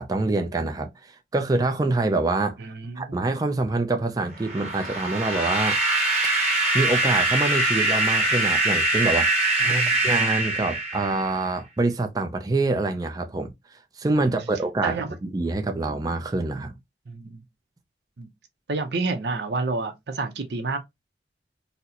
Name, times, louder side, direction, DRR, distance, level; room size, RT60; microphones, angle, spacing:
voice 1, 0.0-2.6 3.0-5.8 6.7-9.3 9.7-13.5 14.0-15.0 15.2-16.8, right 2 dB, 20° right, 0.4 m, -25 dB
voice 2, 2.6-3.2 9.6-10.0 14.8-15.2 17.1-17.4 18.2-18.3 18.7-20.8, right 3 dB, 70° right, 0.6 m, -29 dB
sound 1, 4.4-11.4, right 2 dB, 40° right, 1.4 m, -23 dB
4.0 x 2.0 x 2.7 m
head